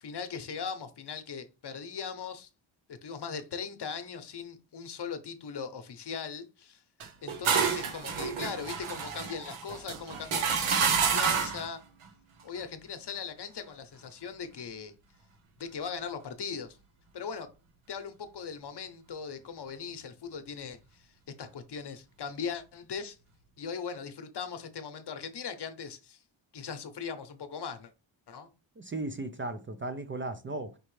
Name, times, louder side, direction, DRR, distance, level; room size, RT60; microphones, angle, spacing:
voice 1, 0.0-2.5 3.0-6.8 7.2-11.8 12.4-14.9 15.6-16.8 17.1-17.5 17.9-21.1 21.4-23.2 23.6-26.2 26.5-27.9 28.3-28.5, left 6 dB, 55° left, 0.9 m, -39 dB
sound 1, 7.0-11.7, right 6 dB, 90° right, 1.0 m, -29 dB
voice 2, 28.8-30.8, right 2 dB, 25° right, 0.5 m, -36 dB
5.2 x 3.1 x 3.2 m
cardioid pair, 85°, 48 cm